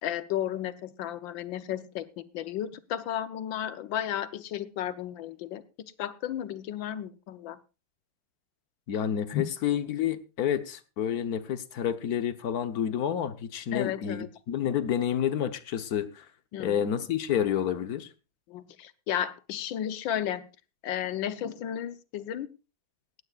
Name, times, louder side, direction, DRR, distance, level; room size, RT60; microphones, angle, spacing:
voice 1, 0.0-5.6 6.0-7.6 9.3-9.4 13.7-14.3 16.5-16.9 18.5-20.4 20.8-22.5, left 10 dB, 75° left, 1.6 m, -33 dB
voice 2, 8.9-16.2 16.6-18.1, left 9 dB, 55° left, 1.3 m, -29 dB
18.0 x 15.0 x 2.4 m
omnidirectional pair, 2.1 m